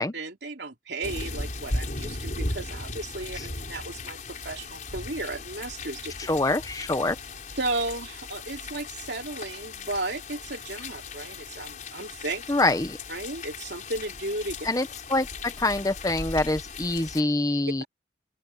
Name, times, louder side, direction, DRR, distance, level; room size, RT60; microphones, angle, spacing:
voice 1, 0.0-6.1 7.6-12.4 13.1-14.6 17.8-17.9, right 2 dB, 60° right, 3.2 m, -34 dB
sound 1, 1.0-17.2, left 3 dB, 45° left, 5.0 m, -37 dB
voice 2, 6.3-7.2 12.5-13.0 14.6-17.8, left 2 dB, 20° left, 0.8 m, -25 dB
open air
head